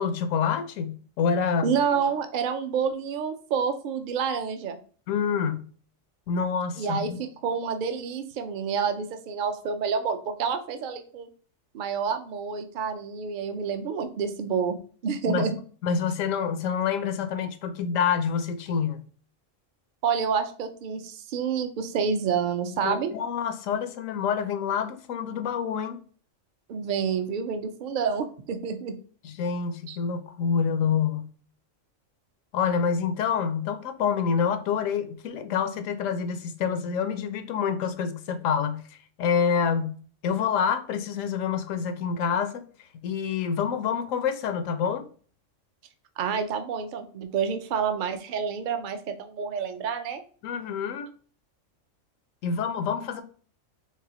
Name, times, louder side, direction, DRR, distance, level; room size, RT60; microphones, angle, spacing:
voice 1, 0.0-1.7 5.1-5.7 6.3-7.2 15.3-15.5 15.8-19.1 22.8-26.0 29.2-31.3 32.5-38.8 39.2-40.0 40.2-42.7 43.0-45.1 50.4-51.1 52.4-53.2, left 6 dB, 80° left, 1.0 m, -27 dB
voice 2, 1.6-4.8 6.8-11.3 11.7-14.8 15.0-15.6 20.0-23.1 26.7-29.0 29.9-30.0 46.2-50.2, right 6 dB, 50° right, 0.6 m, -28 dB
4.7 x 3.7 x 2.9 m
omnidirectional pair, 1.4 m